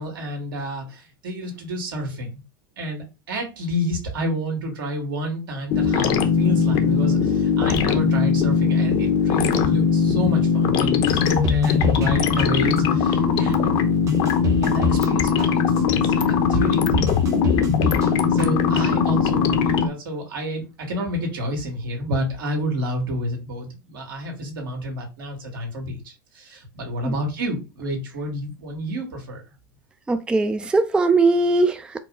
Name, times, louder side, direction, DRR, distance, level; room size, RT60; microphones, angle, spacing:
voice 1, 0.0-2.4 2.8-13.7 14.6-17.1 18.3-29.4, equal, 75° right, 1.8 m, -29 dB
sound 1, 5.7-19.9, left 6 dB, 50° left, 0.7 m, -20 dB
sound 2, 11.1-12.1 12.4-13.0 13.5-13.6 14.1-15.1 15.4-16.0 16.5-16.6 17.1-18.1 18.4-19.0 19.3-19.4, left 1 dB, 30° right, 1.0 m, -27 dB
voice 2, 30.1-32.0, right 3 dB, 10° right, 0.3 m, -20 dB
4.6 x 2.0 x 3.7 m
hypercardioid pair, 110°, 11 cm